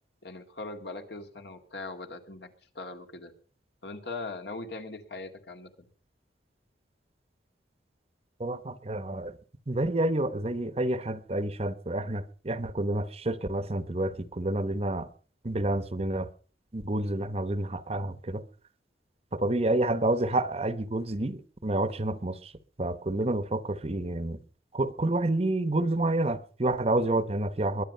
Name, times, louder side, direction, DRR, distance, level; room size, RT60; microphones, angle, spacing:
voice 1, 0.2-2.5 2.7-3.3 3.8-5.9, left 3 dB, 70° left, 2.2 m, -40 dB
voice 2, 8.4-9.4 9.7-15.1 15.4-16.3 16.7-18.4 19.3-22.5 22.8-24.4 24.7-27.8, right 2 dB, 35° right, 0.9 m, -29 dB
22.0 x 9.9 x 5.5 m
head